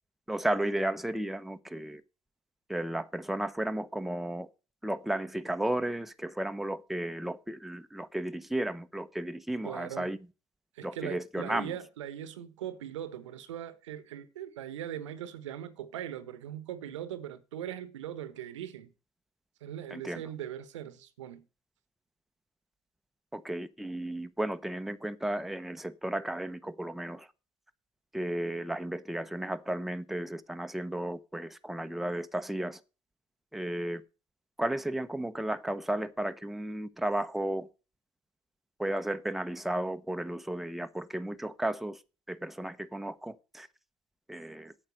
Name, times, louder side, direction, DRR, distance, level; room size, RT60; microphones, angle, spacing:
voice 1, 0.3-2.0 2.7-4.5 4.8-10.2 10.8-11.7 19.9-20.2 23.3-27.3 28.1-32.8 33.5-34.0 34.6-37.7 38.8-42.0 42.3-43.7 44.3-44.7, right 1 dB, ahead, 0.8 m, -34 dB
voice 2, 9.6-10.1 10.8-18.9 19.6-21.5, right 10 dB, 85° right, 1.0 m, -40 dB
8.4 x 6.3 x 8.0 m
hypercardioid pair, 65°, 15 cm